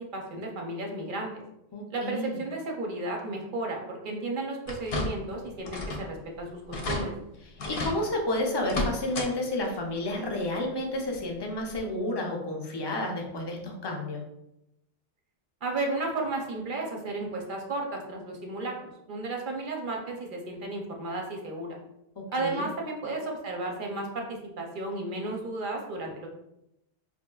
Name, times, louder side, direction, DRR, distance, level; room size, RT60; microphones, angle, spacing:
voice 1, 0.1-1.4 1.9-7.1 15.6-21.8 22.3-26.3, right 2 dB, 55° right, 1 dB, 0.6 m, -33 dB
voice 2, 1.7-2.4 7.7-14.2 22.2-22.7, left 1 dB, 40° left, 0 dB, 0.3 m, -31 dB
sound 1, 4.7-5.3 5.7-6.1 6.4-6.5 6.7-7.0 7.6-8.0 8.6-9.3 9.7-9.8 11.2-11.3 11.8-11.9, left 2 dB, 60° left, 0.8 m, -32 dB
4.3 x 2.6 x 2.3 m, 0.86 s
omnidirectional pair, 1.2 m